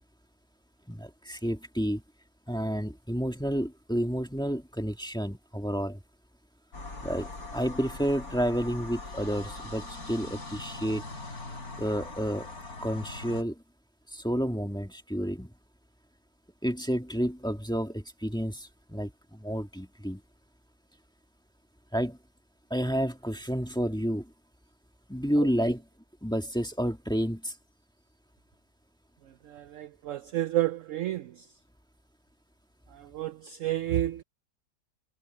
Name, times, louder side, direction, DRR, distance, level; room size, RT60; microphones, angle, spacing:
voice 1, 0.9-2.0 2.5-6.0 7.0-11.0 11.8-12.5 12.8-13.6 14.1-15.5 16.6-20.2 21.9-22.2 22.7-24.3 25.1-25.8 26.2-27.5, equal, 5° left, 1.7 m, -30 dB
sound 1, 6.7-13.4, left 2 dB, 55° left, 6.1 m, -41 dB
voice 2, 29.5-31.3 33.0-34.2, right 13 dB, 70° right, 0.7 m, -30 dB
omnidirectional pair, 1.9 m